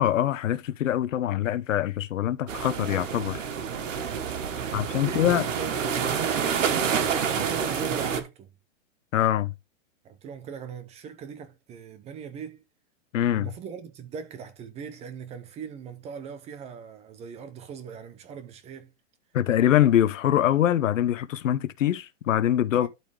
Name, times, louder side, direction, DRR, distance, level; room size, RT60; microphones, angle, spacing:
voice 1, 0.0-3.4 4.7-5.5 9.1-9.5 13.1-13.5 19.3-22.9, left 11 dB, 85° left, 0.9 m, -24 dB
sound 1, 2.5-8.2, right 7 dB, 80° right, 1.8 m, -28 dB
voice 2, 4.5-8.5 10.0-12.6 13.3-18.9 22.7-22.9, right 6 dB, 15° right, 0.8 m, -39 dB
12.0 x 4.3 x 3.3 m
hypercardioid pair, 150°, 38 cm